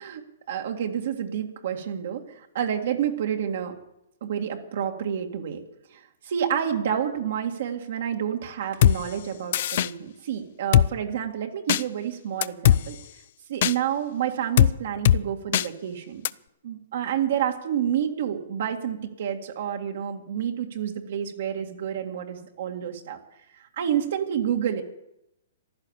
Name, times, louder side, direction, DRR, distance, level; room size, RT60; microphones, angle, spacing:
voice 1, 0.0-3.8 4.2-5.6 5.9-13.0 13.5-16.2 16.6-23.2 23.5-24.8, right 9 dB, 65° right, 2 dB, 2.1 m, -29 dB
Drum kit, 8.8-9.0 9.5-9.9 10.7-10.9 11.7-11.8 12.4-12.8 13.6-13.7 14.6-14.7 15.1-15.2 15.5-15.7 16.3-16.4, left 11 dB, 55° left, 0.5 m, -18 dB
15.5 x 11.5 x 7.4 m, 0.84 s
hypercardioid pair, 145°, 0 cm